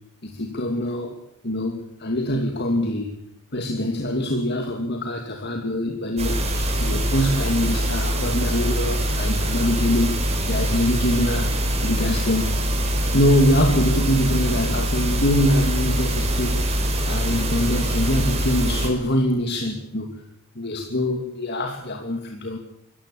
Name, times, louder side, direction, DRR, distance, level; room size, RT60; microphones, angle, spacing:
voice 1, 0.2-1.2 1.4-3.1 3.5-11.5 11.8-12.6 13.1-16.7 17.1-20.2 20.5-22.6, equal, 50° left, 3 dB, 2.7 m, -24 dB
sound 1, 6.2-18.9, equal, 30° right, 5.7 m, -23 dB
26.0 x 15.0 x 8.7 m, 0.75 s
head